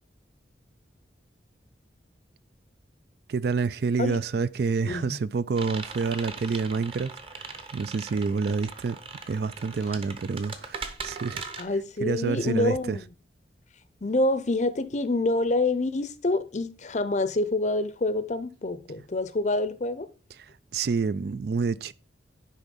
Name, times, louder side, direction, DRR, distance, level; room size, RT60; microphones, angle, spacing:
voice 1, 3.3-9.0 9.3-11.4 12.0-13.0 20.3-20.5 20.7-21.9, right 4 dB, 60° right, 0.4 m, -28 dB
sound 1, 5.5-11.6, right 4 dB, 30° right, 0.9 m, -40 dB
voice 2, 11.6-13.1 14.0-20.1, left 2 dB, 40° left, 0.6 m, -27 dB
10.0 x 3.6 x 5.2 m
head